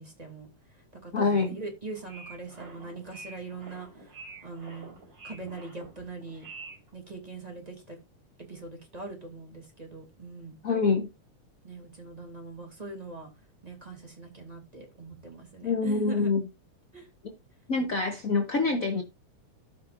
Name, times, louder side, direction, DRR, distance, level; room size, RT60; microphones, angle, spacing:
voice 1, 0.0-4.1 4.4-4.9 5.2-6.5 6.9-8.0 8.5-10.6 11.6-13.3 13.6-16.3 16.9-17.1, right 3 dB, 15° right, 2.7 m, -41 dB
voice 2, 1.1-1.6 10.6-11.1 15.6-16.4 17.7-19.0, left 4 dB, 60° left, 0.8 m, -25 dB
sound 1, 1.9-6.9, right 3 dB, 35° right, 4.8 m, -47 dB
16.5 x 5.7 x 2.6 m
omnidirectional pair, 3.3 m